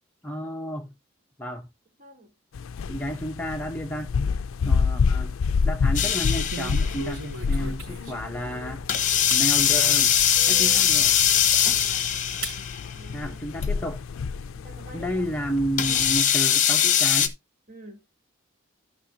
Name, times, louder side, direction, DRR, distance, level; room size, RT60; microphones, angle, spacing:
voice 1, 0.2-0.9 1.4-1.7 2.9-4.1 4.7-5.3 5.6-8.8 9.3-10.2 10.5-11.1 13.1-14.0 14.9-17.3, equal, 10° left, 0.8 m, -31 dB
voice 2, 2.0-2.3 7.5-7.8 10.3-11.0 12.9-13.4 14.5-15.2 17.7-18.0, right 3 dB, 40° right, 4.3 m, -46 dB
sound 1, 2.5-16.2, left 5 dB, 85° left, 0.4 m, -29 dB
sound 2, 4.4-5.1 5.5-5.7 6.2-8.3 8.8-8.9 9.3-9.5 10.0-10.1 10.6-10.7 11.1-11.9 12.4-12.6 13.0-13.9, right 2 dB, 90° right, 4.3 m, -38 dB
sound 3, 6.0-7.1 8.9-12.9 13.6-13.7 15.8-17.3, left 9 dB, 40° left, 1.1 m, -21 dB
14.5 x 6.0 x 2.7 m
head